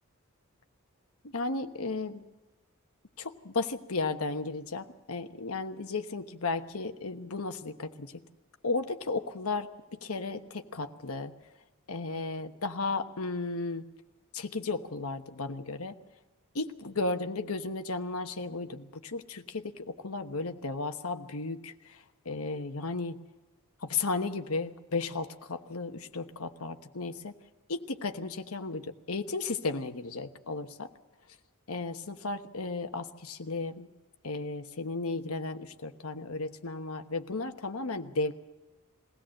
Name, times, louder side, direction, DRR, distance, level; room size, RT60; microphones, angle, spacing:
voice 1, 1.2-2.2 3.2-8.2 8.6-11.3 11.9-13.9 14.3-15.9 16.5-23.2 23.8-27.3 27.7-30.9 31.7-33.9 34.2-38.3, left 3 dB, 70° left, 8 dB, 1.2 m, -34 dB
22.0 x 16.5 x 7.7 m, 1.1 s
head